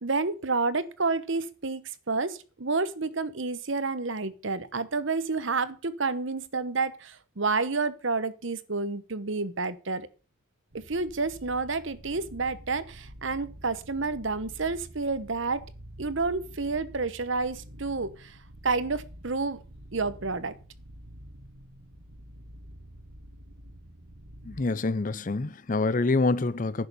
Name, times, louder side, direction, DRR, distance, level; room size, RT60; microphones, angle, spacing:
voice 1, 0.0-10.1 10.9-15.7 16.0-18.4 18.6-19.6 19.9-20.5, right 3 dB, 60° right, 1.0 m, -29 dB
sound 1, 10.7-24.6, equal, 80° right, 1.7 m, -48 dB
voice 2, 24.5-26.9, left 3 dB, 35° left, 0.5 m, -26 dB
11.0 x 6.8 x 6.8 m
head